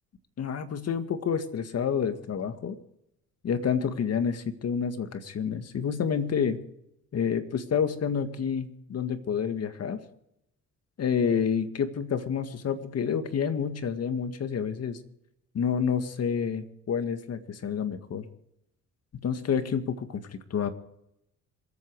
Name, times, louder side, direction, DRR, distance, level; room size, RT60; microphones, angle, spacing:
voice 1, 0.4-2.8 3.4-6.6 7.1-10.0 11.0-15.0 15.5-18.3 19.2-20.2 20.5-20.7, left 7 dB, 55° left, 8 dB, 1.9 m, -29 dB
27.0 x 9.1 x 4.8 m, 0.81 s
cardioid pair, 90°, 30 cm